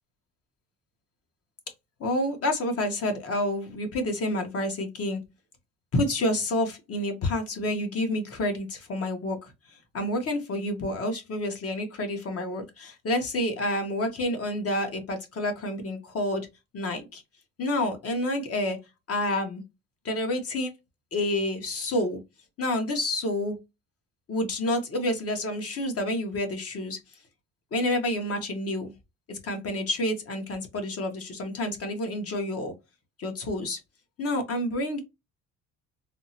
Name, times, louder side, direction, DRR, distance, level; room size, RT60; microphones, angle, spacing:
voice 1, 2.0-5.2 5.9-16.5 16.7-17.2 17.6-18.8 19.1-19.6 20.0-20.7 21.1-22.2 22.6-23.6 24.3-27.0 27.7-28.9 29.3-32.7 33.2-33.8 34.2-35.0, left 1 dB, 50° left, 1.1 m, -29 dB
3.5 x 2.0 x 2.8 m
cardioid pair, 90°, 30 cm